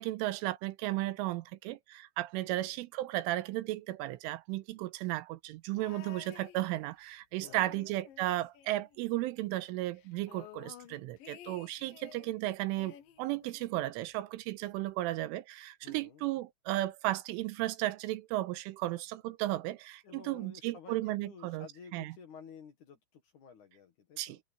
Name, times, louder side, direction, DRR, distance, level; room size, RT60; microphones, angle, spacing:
voice 1, 0.0-21.7 21.9-22.1 24.2-24.4, right 16 dB, 90° right, 3.3 m, -35 dB
voice 2, 2.4-2.8 7.4-7.8 15.8-16.2 20.0-24.4, left 6 dB, 55° left, 2.3 m, -53 dB
sound 1, 5.8-7.1 7.4-9.3 9.6-9.7 9.9-12.3 12.8-14.0 14.9-15.0, left 11 dB, 80° left, 2.0 m, -53 dB
omnidirectional pair, 5.7 m